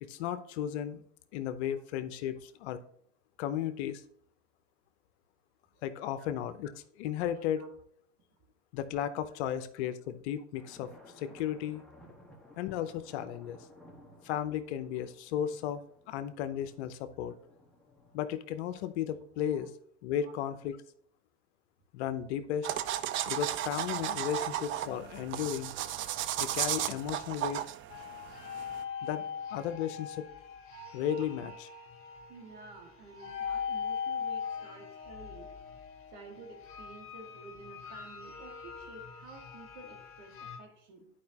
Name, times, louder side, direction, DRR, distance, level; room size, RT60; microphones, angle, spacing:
voice 1, 0.0-1.0 1.3-2.8 3.4-4.0 5.8-6.7 7.0-7.7 8.7-10.9 11.2-11.8 12.6-13.6 14.2-15.8 16.1-17.3 18.1-19.7 20.0-20.8 21.9-22.7 23.3-25.7 26.4-27.6 29.0-29.2 29.5-30.3 30.9-31.5, left 10 dB, 65° left, 12 dB, 0.7 m, -34 dB
sound 1, 10.5-18.4, left 1 dB, ahead, 1.3 m, -57 dB
sound 2, 22.6-28.8, right 11 dB, 35° right, 0.5 m, -35 dB
sound 3, 27.9-40.6, left 7 dB, 35° left, 1.8 m, -41 dB
voice 2, 32.3-35.5 36.1-41.1, right 3 dB, 55° right, 3 dB, 1.9 m, -51 dB
10.5 x 4.8 x 2.9 m, 0.64 s
hypercardioid pair, 100°, 36 cm